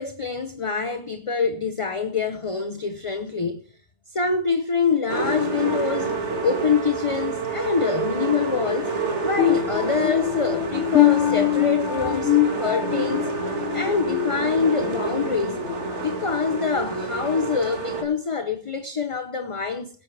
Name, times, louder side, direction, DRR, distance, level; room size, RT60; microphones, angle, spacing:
voice 1, 0.0-3.6 4.1-6.1 6.4-8.9 9.2-13.3 13.7-15.6 16.0-19.9, left 5 dB, 30° left, 0.7 m, -25 dB
sound 1, 5.1-18.0, right 3 dB, 55° right, 2.4 m, -28 dB
sound 2, 9.4-15.0 15.5-15.7 16.3-16.4, left 13 dB, 60° left, 1.2 m, -24 dB
22.5 x 9.1 x 3.4 m
omnidirectional pair, 1.4 m